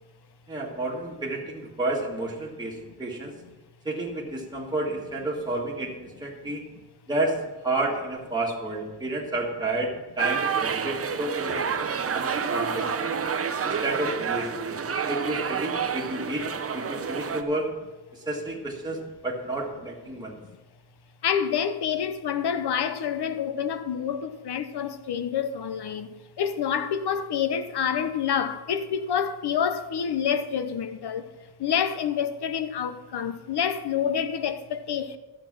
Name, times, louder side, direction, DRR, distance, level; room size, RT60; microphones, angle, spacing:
voice 1, 0.5-3.3 3.8-6.6 7.1-13.1 13.6-14.8 15.1-16.5 16.7-17.7 18.1-20.4, right 2 dB, 10° right, 1.6 m, -31 dB
sound 1, 10.2-17.4, right 6 dB, 35° right, 0.6 m, -29 dB
voice 2, 21.2-26.1 26.4-31.2 31.6-35.2, left 8 dB, 70° left, 0.8 m, -27 dB
12.0 x 7.4 x 6.0 m
wide cardioid pair, 165°, 41 cm